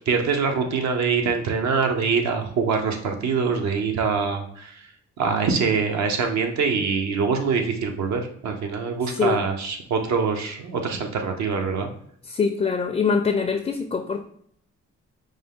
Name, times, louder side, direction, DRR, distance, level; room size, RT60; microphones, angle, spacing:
voice 1, 0.1-4.9 5.2-11.9, right 5 dB, 70° right, 4 dB, 0.8 m, -24 dB
voice 2, 12.3-14.3, left 5 dB, 25° left, 5 dB, 0.4 m, -23 dB
5.1 x 2.2 x 3.6 m, 0.65 s
cardioid pair, 75°, 29 cm